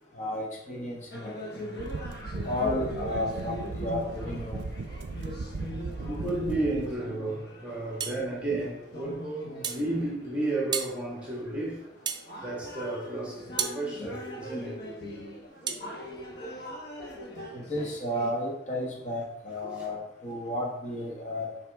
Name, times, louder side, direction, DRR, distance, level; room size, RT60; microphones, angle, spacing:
voice 1, 0.1-1.8 2.4-4.7 17.5-21.5, left 1 dB, 40° left, 1.3 m, -33 dB
sound 1, 1.1-18.3, equal, 60° left, 1.4 m, -41 dB
sound 2, 1.8-6.9, right 3 dB, 75° right, 0.5 m, -37 dB
voice 2, 6.1-11.8 12.4-14.8 15.7-15.8, right 2 dB, 5° right, 1.8 m, -33 dB
sound 3, 8.0-8.2 9.6-9.9 10.7-11.0 12.0-12.3 13.6-13.8 15.7-15.8, right 6 dB, 25° right, 0.5 m, -31 dB
8.0 x 5.0 x 3.5 m
head